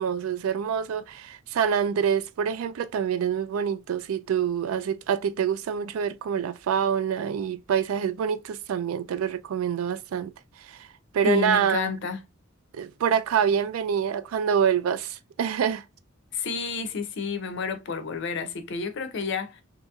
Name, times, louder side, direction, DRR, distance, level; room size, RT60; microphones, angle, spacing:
voice 1, 0.0-10.3 11.1-11.9 12.7-15.8, right 8 dB, 85° right, 0.3 m, -26 dB
voice 2, 11.2-12.2 16.3-19.6, left 5 dB, 60° left, 0.5 m, -30 dB
2.9 x 2.8 x 2.2 m
head